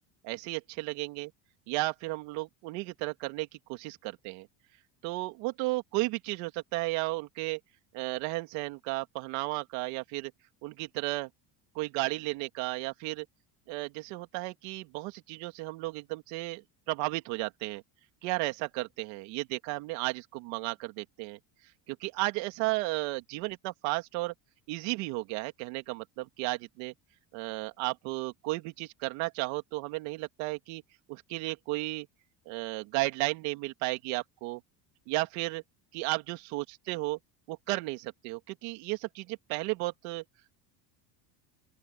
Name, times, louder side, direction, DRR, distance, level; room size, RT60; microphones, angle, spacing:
voice 1, 0.2-1.3 1.7-4.5 5.0-7.6 7.9-10.3 10.6-11.3 11.8-13.2 13.7-16.6 16.9-17.8 18.2-21.4 21.9-24.3 24.7-26.9 27.3-30.8 31.1-32.1 32.5-34.6 35.1-35.6 35.9-37.2 37.5-40.2, right 22 dB, 80° right, 2.4 m, -34 dB
open air
cardioid pair, 135°, 45 cm